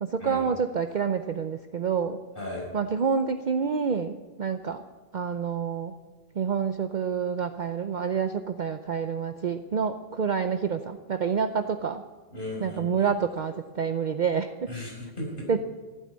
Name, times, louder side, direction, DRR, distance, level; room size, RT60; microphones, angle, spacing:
voice 1, 0.0-2.2 2.7-4.8 5.1-5.9 6.4-12.0 12.6-14.7 15.5-15.6, right 6 dB, 50° right, 8 dB, 0.7 m, -28 dB
voice 2, 2.4-2.7 12.3-13.1 14.7-15.5, left 1 dB, 55° left, -2 dB, 5.5 m, -36 dB
14.5 x 9.0 x 9.6 m, 1.3 s
omnidirectional pair, 1.1 m